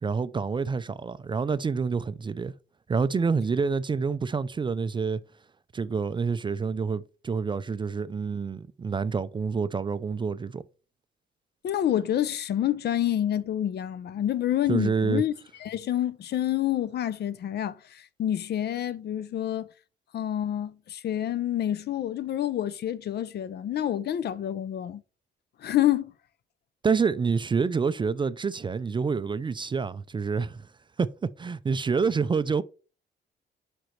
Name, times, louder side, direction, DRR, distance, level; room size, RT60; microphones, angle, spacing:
voice 1, 0.0-2.5 2.9-5.2 5.7-10.6 14.7-15.2 26.8-30.7 31.0-32.6, right 5 dB, 25° right, 0.4 m, -27 dB
voice 2, 11.6-15.3 15.6-19.7 20.1-25.0 25.6-26.1, left 11 dB, 55° left, 0.5 m, -28 dB
5.2 x 4.8 x 4.4 m
cardioid pair, 90°, 20 cm